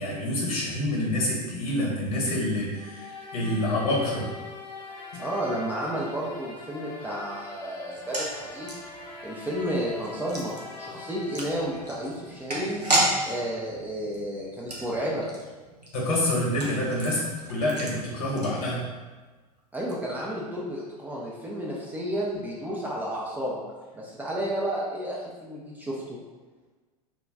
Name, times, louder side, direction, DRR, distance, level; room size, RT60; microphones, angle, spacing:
voice 1, 0.0-4.3 15.9-17.2 17.5-18.8, left 1 dB, 60° left, -3 dB, 0.9 m, -27 dB
sound 1, 2.8-12.7, left 3 dB, 80° left, 0.5 m, -43 dB
voice 2, 5.2-8.7 9.2-10.5 10.8-12.9 13.3-15.3 19.7-23.6 24.0-26.2, equal, 10° right, -5 dB, 0.3 m, -31 dB
sound 2, 7.9-19.1 19.4-19.5 19.7-19.9, right 2 dB, 90° right, 0.5 m, -33 dB
2.3 x 2.1 x 3.3 m, 1.3 s
figure-of-eight pair, 85°, 20 cm